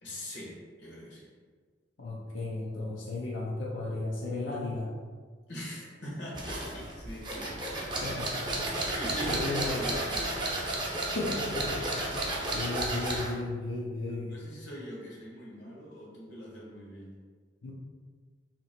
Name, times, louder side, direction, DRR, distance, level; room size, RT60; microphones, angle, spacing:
voice 1, 0.0-1.3 5.5-7.8 8.8-10.4 14.1-17.2, equal, 75° left, -4 dB, 1.2 m, -42 dB
voice 2, 2.0-4.9 8.0-9.9 10.8-14.3 17.6-17.7, left 2 dB, 90° left, -4 dB, 0.6 m, -35 dB
sound 1, 6.3-13.4, right 1 dB, 25° right, 0.6 m, -32 dB
3.0 x 2.9 x 4.2 m, 1.5 s
head